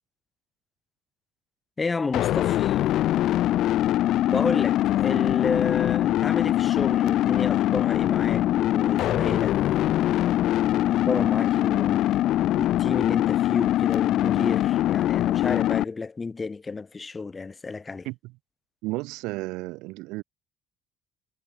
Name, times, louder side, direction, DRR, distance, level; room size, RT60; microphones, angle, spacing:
voice 1, 1.8-2.8 4.3-9.6 10.9-12.1 12.5-18.1, left 4 dB, 20° left, 6.2 m, -31 dB
sound 1, 2.1-15.8, left 13 dB, 60° left, 0.7 m, -23 dB
voice 2, 18.8-20.2, right 22 dB, 85° right, 4.2 m, -33 dB
cardioid pair, 130°, 0 cm